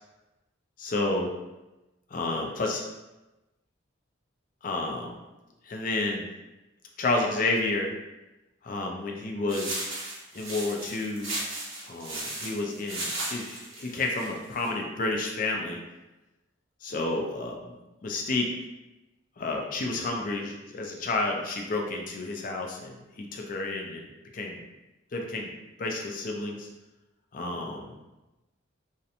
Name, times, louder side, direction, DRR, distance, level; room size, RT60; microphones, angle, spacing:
voice 1, 0.8-1.3 2.1-2.8 4.6-5.2 5.6-6.3 7.0-7.9 8.6-9.9 10.3-11.3 11.8-15.8 16.8-17.8 18.0-18.5 19.4-24.1 24.3-24.6 25.1-25.5 25.8-26.7 27.3-28.0, left 2 dB, 40° left, 1 dB, 0.3 m, -30 dB
sound 1, 9.5-14.7, right 2 dB, 85° right, 0.8 m, -36 dB
2.8 x 2.1 x 2.5 m, 1.0 s
head